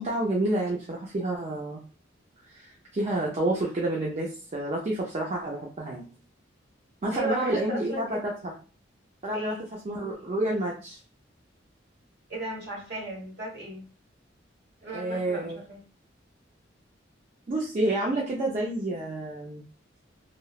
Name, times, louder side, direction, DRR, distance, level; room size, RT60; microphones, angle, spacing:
voice 1, 0.0-1.8 2.4-6.1 7.0-8.5 9.2-9.6 9.8-11.0 14.9-15.6 17.5-19.6, right 1 dB, 35° right, -2 dB, 0.4 m, -29 dB
voice 2, 7.1-8.3 9.3-9.6 12.3-13.9 14.8-15.8, right 1 dB, 55° right, -1 dB, 1.0 m, -36 dB
2.9 x 2.0 x 2.3 m, 0.37 s
head